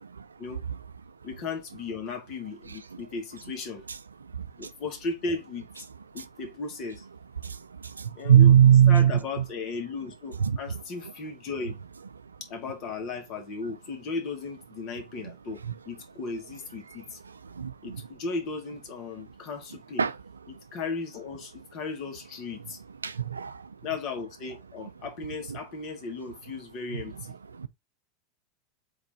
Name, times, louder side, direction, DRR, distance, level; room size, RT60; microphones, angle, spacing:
voice 1, 1.2-3.8 4.6-5.7 6.1-7.0 8.2-8.6 8.9-11.8 12.5-17.2 17.8-20.1 20.5-22.8 23.8-27.4, left 4 dB, 50° left, 1.4 m, -36 dB
voice 2, 7.9-9.1 17.6-18.0 20.0-20.1 23.0-23.6 27.6-27.7, right 9 dB, 90° right, 0.3 m, -19 dB
3.9 x 3.4 x 3.0 m
hypercardioid pair, 85°, 0 cm